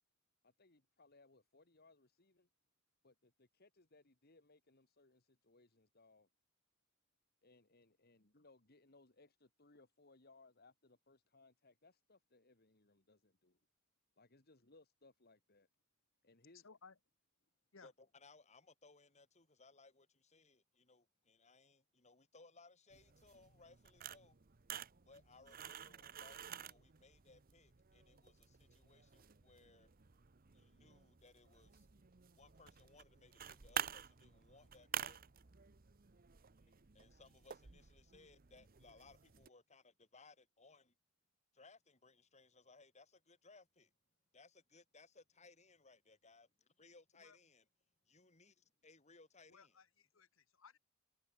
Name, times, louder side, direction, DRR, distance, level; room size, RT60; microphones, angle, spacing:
voice 1, 0.4-2.5 3.0-6.3 7.4-13.6 14.2-15.7 16.2-16.7, left 3 dB, 50° left, 2.4 m, -68 dB
voice 2, 16.5-16.9 17.7-17.9 47.2-47.4 49.5-50.8, left 5 dB, 80° left, 1.4 m, -61 dB
voice 3, 17.8-24.4 25.1-29.9 30.5-31.9 32.3-35.2 36.6-40.9 41.5-43.9 44.3-47.7 48.1-48.5 48.8-49.8, left 3 dB, 35° left, 4.6 m, -65 dB
sound 1, 22.9-39.5, right 9 dB, 45° right, 0.9 m, -50 dB
head